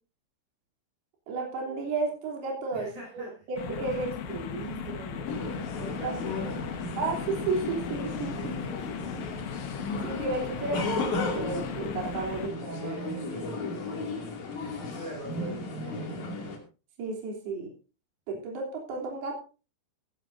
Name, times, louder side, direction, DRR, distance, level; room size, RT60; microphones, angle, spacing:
voice 1, 1.3-4.1 6.0-6.2 7.0-8.6 10.0-13.0 17.0-17.7 18.3-19.4, right 3 dB, 60° right, -1 dB, 5.1 m, -33 dB
voice 2, 2.7-5.3 5.7-6.8 8.3-9.1 12.2-16.2, right 2 dB, 40° right, -2 dB, 8.1 m, -43 dB
sound 1, 3.6-12.5, left 8 dB, 75° left, 3.7 m, -37 dB
sound 2, 5.3-16.6, left 2 dB, 45° left, 3.5 m, -35 dB
16.0 x 15.5 x 2.7 m, 0.33 s
omnidirectional pair, 5.4 m